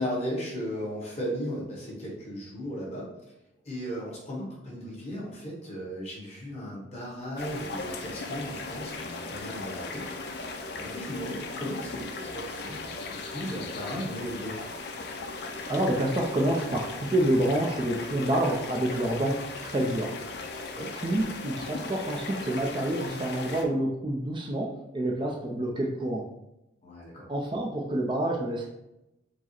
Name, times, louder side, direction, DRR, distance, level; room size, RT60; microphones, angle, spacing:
voice 1, 0.0-3.0 3.6-10.4 10.8-14.6 20.7-20.9 26.8-27.3, equal, 35° left, -4 dB, 1.4 m, -36 dB
sound 1, 7.4-23.6, left 3 dB, 55° left, 0.5 m, -37 dB
voice 2, 15.7-20.2 21.0-26.3 27.3-28.7, right 1 dB, 25° right, -1 dB, 0.4 m, -28 dB
4.6 x 2.0 x 4.2 m, 0.88 s
head